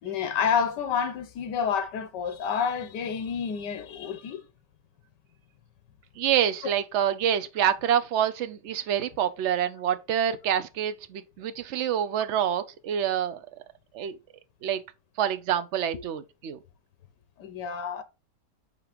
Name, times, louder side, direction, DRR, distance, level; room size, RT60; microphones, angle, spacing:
voice 1, 0.0-4.5 17.4-18.0, left 7 dB, 80° left, 1.5 m, -29 dB
voice 2, 6.2-13.4 13.9-14.2 14.6-14.8 15.2-16.6, right 9 dB, 60° right, 0.7 m, -27 dB
8.7 x 3.0 x 4.9 m
omnidirectional pair, 1.9 m